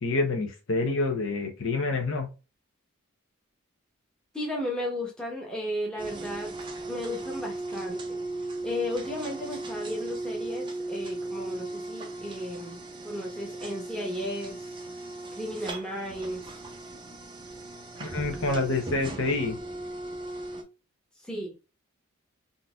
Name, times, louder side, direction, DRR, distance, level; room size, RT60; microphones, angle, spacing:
voice 1, 0.0-2.3 18.0-19.6, left 3 dB, 65° left, 0.8 m, -27 dB
voice 2, 4.3-6.5 6.9-8.0 8.6-14.6 15.4-16.4 21.2-21.5, left 1 dB, 5° left, 0.9 m, -34 dB
sound 1, 6.0-20.6, right 2 dB, 25° right, 0.5 m, -37 dB
3.8 x 2.7 x 2.3 m
head